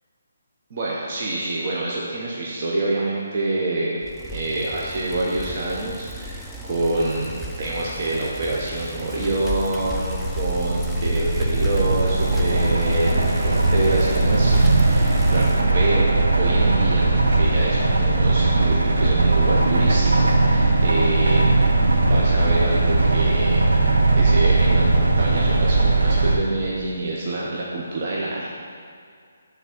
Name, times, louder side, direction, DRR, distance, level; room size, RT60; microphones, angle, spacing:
voice 1, 0.7-4.0 4.3-16.1 16.4-21.6 22.0-23.6 24.2-28.5, right 2 dB, 40° right, -5 dB, 0.8 m, -26 dB
Bicycle, 4.0-15.7, equal, ahead, 0.3 m, -34 dB
sound 1, 9.8-26.4, right 2 dB, 80° right, 0.9 m, -19 dB
5.9 x 3.6 x 5.9 m, 2.2 s
hypercardioid pair, 170°, 0 cm